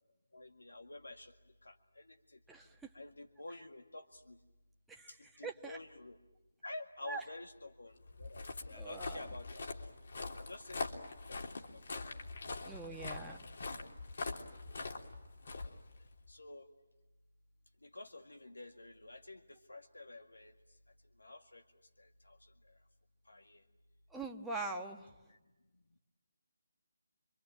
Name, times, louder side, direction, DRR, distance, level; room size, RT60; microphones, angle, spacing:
voice 1, 0.3-1.3 1.6-2.4 2.9-4.4 5.1-6.2 6.6-9.7 10.4-11.0 11.3-11.6 12.8-13.9 15.5-15.8 16.3-16.7 17.8-20.5 21.2-21.6 22.0-22.4 23.3-23.6, left 2 dB, 80° left, 5 dB, 2.0 m, -50 dB
voice 2, 2.5-2.9 4.9-5.8 7.1-7.2 8.7-9.2 12.7-13.4 24.1-25.1, right 3 dB, 5° right, -1 dB, 1.5 m, -43 dB
Walk footsteps, 8.0-16.3, left 3 dB, 60° left, 3.4 m, -43 dB
27.0 x 24.5 x 9.0 m, 1.1 s
figure-of-eight pair, 150°, 0 cm